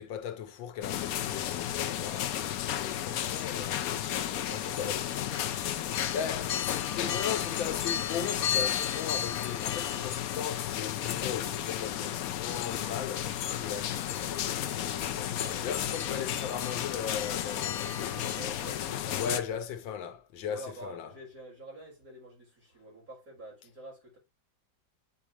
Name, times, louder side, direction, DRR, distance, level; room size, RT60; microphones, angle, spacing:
voice 1, 0.0-2.4 2.7-4.0 4.5-5.1 5.6-18.6 19.1-21.1, left 8 dB, 85° left, 1.6 m, -38 dB
sound 1, 0.8-19.4, left 10 dB, 70° left, 0.9 m, -32 dB
voice 2, 2.6-2.9 4.1-5.3 6.8-7.0 15.3-16.0 17.8-19.6 20.5-24.2, right 2 dB, 50° right, 5.2 m, -48 dB
8.7 x 4.9 x 2.9 m
omnidirectional pair, 2.0 m